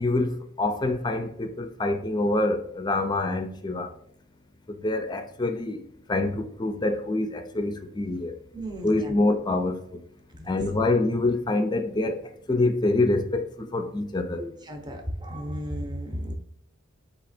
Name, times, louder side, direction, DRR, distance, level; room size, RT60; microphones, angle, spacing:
voice 1, 0.0-3.9 4.7-5.8 6.1-8.4 8.8-10.0 10.5-14.5, left 2 dB, 20° left, 0.4 m, -26 dB
voice 2, 8.5-9.1 10.3-10.6 14.4-16.3, equal, 20° right, 0.7 m, -34 dB
4.1 x 2.8 x 4.2 m
head